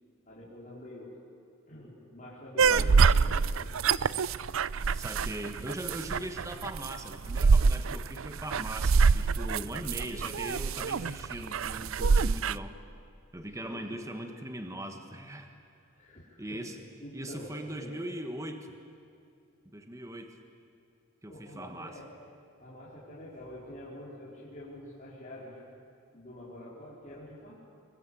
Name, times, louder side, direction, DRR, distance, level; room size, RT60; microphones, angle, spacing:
voice 1, 0.3-1.2 1.7-3.8 13.6-14.2 16.0-16.7 17.0-18.1 21.3-22.1 22.6-25.6 26.1-27.5, left 1 dB, 35° left, -8 dB, 4.6 m, -46 dB
sound 1, 2.6-12.6, right 5 dB, 80° right, 0.5 m, -25 dB
voice 2, 4.9-12.8 13.3-15.5 16.4-16.8 17.1-18.7 19.7-20.4 21.2-22.0, right 1 dB, 15° right, 6 dB, 1.4 m, -40 dB
26.5 x 23.0 x 8.4 m, 2.5 s
head